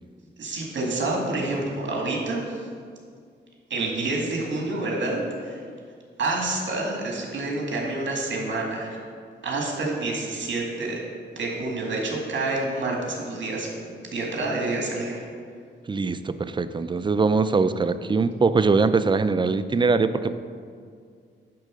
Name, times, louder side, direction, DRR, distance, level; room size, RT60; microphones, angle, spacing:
voice 1, 0.4-2.7 3.7-5.6 6.2-9.0 9.4-11.0 11.4-15.2, right 2 dB, 70° right, -1 dB, 2.1 m, -28 dB
voice 2, 15.9-20.4, right 4 dB, 25° right, 12 dB, 0.4 m, -22 dB
10.0 x 3.7 x 6.3 m, 2.1 s
cardioid pair, 85°, 19 cm